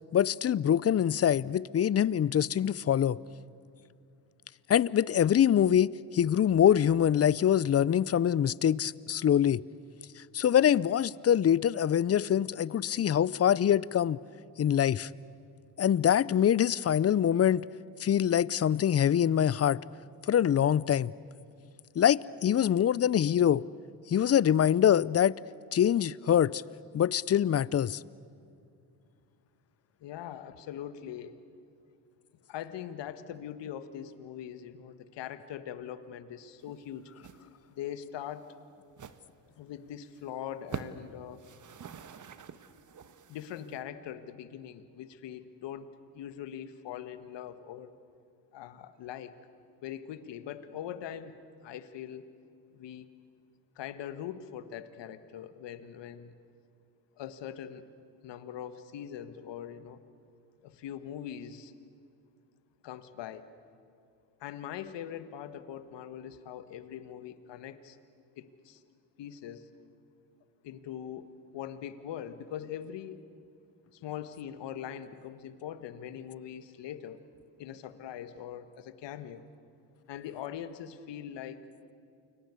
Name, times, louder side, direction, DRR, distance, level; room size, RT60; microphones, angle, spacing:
voice 1, 0.1-3.2 4.7-5.9 6.1-9.6 10.3-14.2 14.6-15.1 15.8-17.6 18.0-19.8 20.3-21.1 22.0-23.6 24.1-25.4 25.7-26.6 26.9-28.0, left 9 dB, 35° left, 0.6 m, -24 dB
voice 2, 30.0-31.4 32.5-37.1 37.7-38.5 39.6-41.4 43.3-45.9 46.1-47.9 48.5-49.3 49.8-52.3 52.7-53.1 53.7-56.3 57.2-57.8 58.2-60.0 60.6-61.7 62.8-63.5 64.4-68.0 68.3-68.8 69.2-69.7 70.6-71.3 71.5-73.2 73.9-77.2 77.6-79.5 80.1-81.6, left 10 dB, 65° left, 1.7 m, -42 dB
sound 1, 36.6-36.9 37.2-37.4 37.7-37.9 38.3-38.4 38.9-39.2 39.7-39.8 40.1-40.2 40.6-41.1 41.3-43.8, right 7 dB, 40° right, 1.4 m, -45 dB
29.0 x 23.5 x 8.4 m
supercardioid pair, 65°, 46 cm